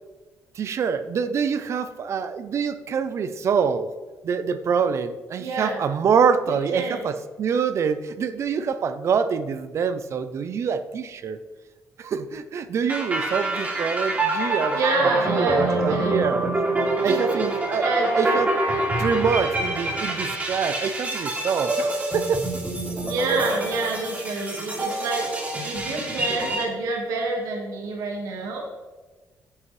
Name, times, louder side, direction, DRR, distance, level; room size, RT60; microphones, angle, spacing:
voice 1, 0.6-3.9 4.2-11.4 12.0-16.6 17.0-17.9 18.1-18.5 19.0-22.4 23.3-23.4, right 6 dB, 55° right, 11 dB, 0.6 m, -25 dB
voice 2, 5.4-5.8 6.7-7.0 14.7-16.2 17.0-17.3 17.8-18.4 23.0-28.6, right 3 dB, 85° right, 0 dB, 1.7 m, -28 dB
sound 1, 12.9-26.6, right 2 dB, 25° right, 2.5 m, -26 dB
9.5 x 8.5 x 3.3 m, 1.3 s
cardioid pair, 95°, 6 cm